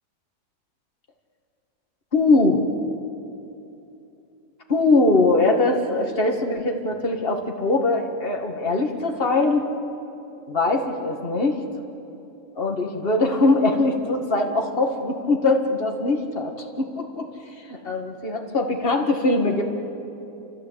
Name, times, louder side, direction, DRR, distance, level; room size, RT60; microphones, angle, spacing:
voice 1, 2.1-2.6 4.7-9.7 10.5-11.6 12.6-17.3 17.7-19.6, left 2 dB, 40° left, 2 dB, 2.1 m, -21 dB
30.0 x 14.0 x 8.3 m, 2.9 s
omnidirectional pair, 1.6 m